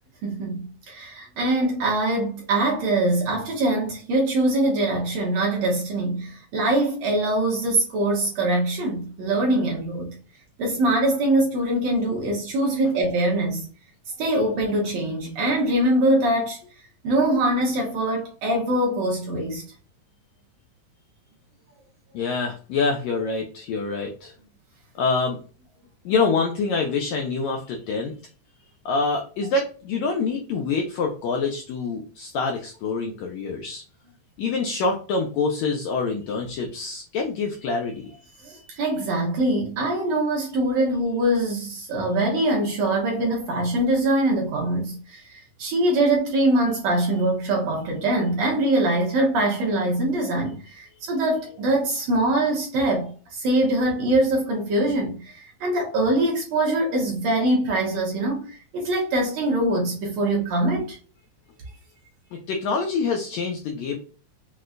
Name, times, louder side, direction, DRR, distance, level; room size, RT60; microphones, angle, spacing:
voice 1, 0.2-10.1 10.6-13.7 14.2-16.6 17.0-19.6 38.4-61.0, right 1 dB, 70° right, 1.7 m, -23 dB
voice 2, 22.1-24.3 24.9-25.4 26.0-28.1 28.8-33.8 34.4-38.8 62.3-64.0, left 4 dB, 85° left, 1.6 m, -26 dB
6.1 x 2.2 x 2.5 m
omnidirectional pair, 3.8 m